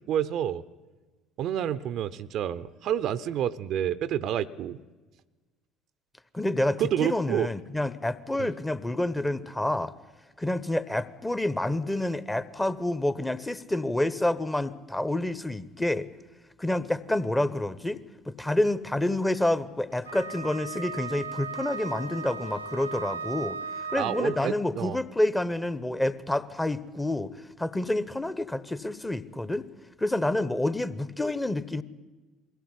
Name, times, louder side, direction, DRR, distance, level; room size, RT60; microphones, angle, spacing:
voice 1, 0.1-0.6 1.4-4.8 6.8-7.5 8.4-8.5 24.0-25.0, right 10 dB, 55° right, 15 dB, 0.7 m, -29 dB
voice 2, 6.3-9.9 10.4-16.1 16.6-23.6 23.9-27.3 27.6-29.7 30.0-31.8, left 1 dB, 10° left, 16 dB, 1.1 m, -28 dB
Wind instrument woodwind instrument, 20.0-24.6, right 5 dB, 85° right, 0.9 m, -37 dB
21.5 x 16.5 x 10.0 m, 1.2 s
figure-of-eight pair, 55°, 0 cm